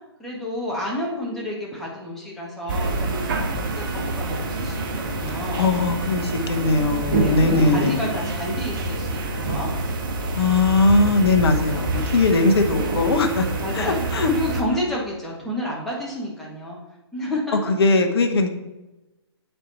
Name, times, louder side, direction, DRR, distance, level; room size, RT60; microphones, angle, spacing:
voice 1, 0.2-5.7 7.1-9.7 12.4-12.7 13.6-14.0 14.3-16.8 17.1-17.7, left 1 dB, ahead, -5 dB, 1.7 m, -30 dB
sound 1, 2.7-14.6, right 2 dB, 45° right, 1.2 m, -26 dB
voice 2, 5.3-8.1 10.4-13.5 13.7-14.3 17.7-18.5, left 3 dB, 60° left, 5 dB, 1.0 m, -20 dB
8.3 x 4.5 x 4.2 m, 1.0 s
figure-of-eight pair, 135°, 15 cm